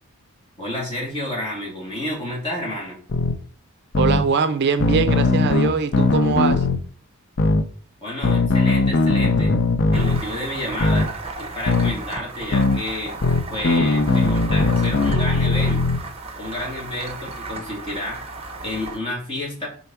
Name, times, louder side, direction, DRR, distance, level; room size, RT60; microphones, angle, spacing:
voice 1, 0.6-3.0 8.0-9.5 9.9-11.1 11.4-13.1 13.5-15.8 16.4-18.2 18.6-19.7, left 1 dB, 25° left, -3 dB, 2.6 m, -30 dB
sound 1, 3.1-3.3 3.9-4.2 4.8-6.8 7.4-7.6 8.2-10.2 10.8-11.1 11.7-11.9 12.5-12.8 13.2-16.0, left 3 dB, 55° left, 0.6 m, -19 dB
voice 2, 4.0-6.7, right 5 dB, 50° right, 10 dB, 0.5 m, -22 dB
sound 2, 9.9-19.0, right 3 dB, 25° right, 0.9 m, -35 dB
4.6 x 4.0 x 5.7 m, 0.44 s
head